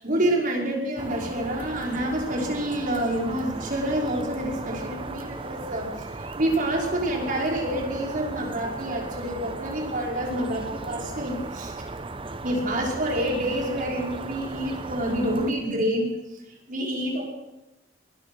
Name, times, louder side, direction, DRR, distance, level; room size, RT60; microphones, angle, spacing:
voice 1, 0.0-6.1 6.4-11.8 12.4-16.1 16.7-17.2, right 1 dB, 50° right, 0 dB, 5.5 m, -27 dB
sound 1, 1.0-15.5, right 3 dB, 30° right, 1.0 m, -37 dB
22.5 x 20.5 x 6.4 m, 0.94 s
head